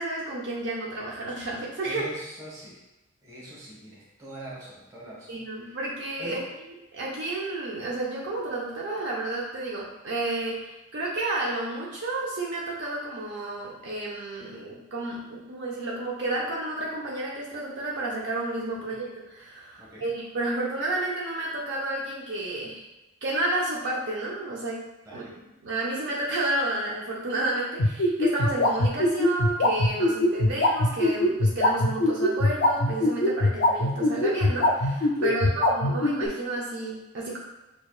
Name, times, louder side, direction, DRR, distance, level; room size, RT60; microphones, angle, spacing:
voice 1, 0.0-2.0 5.3-6.4 6.9-22.8 23.2-24.8 25.1-25.3 25.6-37.4, right 2 dB, 60° right, -4 dB, 0.6 m, -31 dB
voice 2, 1.8-2.8 3.2-5.4 6.2-6.4 18.8-18.9 19.8-20.0 25.0-25.3 35.1-35.6, equal, 20° right, -7 dB, 1.2 m, -42 dB
sound 1, 27.8-36.3, left 1 dB, 55° left, 0.4 m, -21 dB
6.3 x 2.3 x 2.4 m, 1.0 s
head